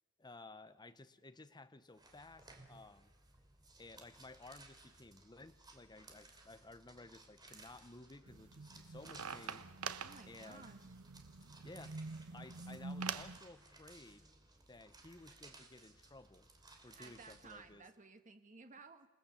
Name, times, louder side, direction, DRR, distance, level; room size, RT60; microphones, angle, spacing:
voice 1, 0.2-3.1 3.8-9.7 10.2-10.7 11.6-12.0 12.3-14.3 14.7-16.5 16.8-17.8, left 2 dB, 20° left, 11 dB, 1.0 m, -56 dB
sound 1, 2.0-17.7, right 3 dB, 20° right, 3.1 m, -61 dB
sound 2, 8.3-13.4, right 5 dB, 85° right, 1.1 m, -46 dB
voice 2, 10.0-10.8 16.9-19.1, right 4 dB, 35° right, 7 dB, 1.5 m, -56 dB
28.5 x 19.0 x 7.2 m, 1.1 s
head